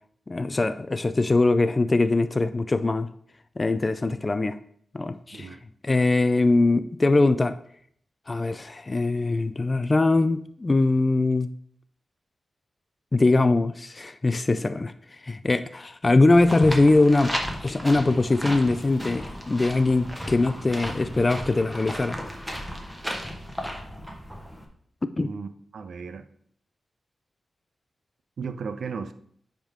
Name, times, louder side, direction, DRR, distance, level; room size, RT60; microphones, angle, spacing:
voice 1, 0.3-3.1 3.6-4.6 4.9-5.6 5.8-7.6 8.3-11.5 13.1-14.9 15.2-17.3 17.6-22.2 25.2-25.3, left 2 dB, 30° left, 11 dB, 0.3 m, -22 dB
sound 1, 16.3-24.6, equal, ahead, 1.1 m, -34 dB
voice 2, 25.2-26.3 28.4-29.1, right 5 dB, 75° right, 11 dB, 0.5 m, -35 dB
9.7 x 3.6 x 3.6 m, 0.63 s
wide cardioid pair, 100°, 0 cm